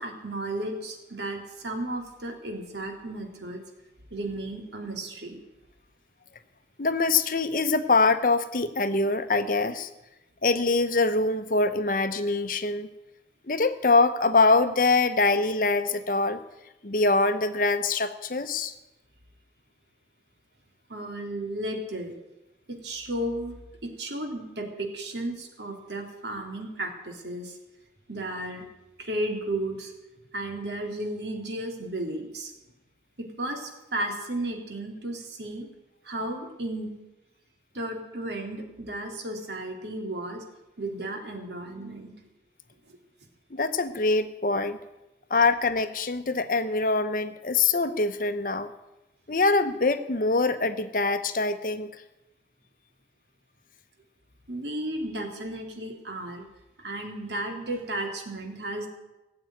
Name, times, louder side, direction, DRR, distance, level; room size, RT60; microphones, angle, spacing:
voice 1, 0.0-3.6 4.1-5.4 20.9-22.2 22.7-23.5 23.8-27.6 28.1-28.6 29.0-29.9 30.3-32.5 33.2-35.7 36.0-37.0 37.7-40.4 40.8-42.1 54.5-56.5 56.8-58.9, right 1 dB, 75° right, 2 dB, 2.9 m, -34 dB
voice 2, 6.8-9.9 10.4-12.9 13.5-16.4 16.8-18.7 43.5-44.8 45.3-48.7 49.3-51.9, left 3 dB, 50° left, 10 dB, 0.9 m, -24 dB
17.0 x 7.8 x 9.2 m, 1.0 s
head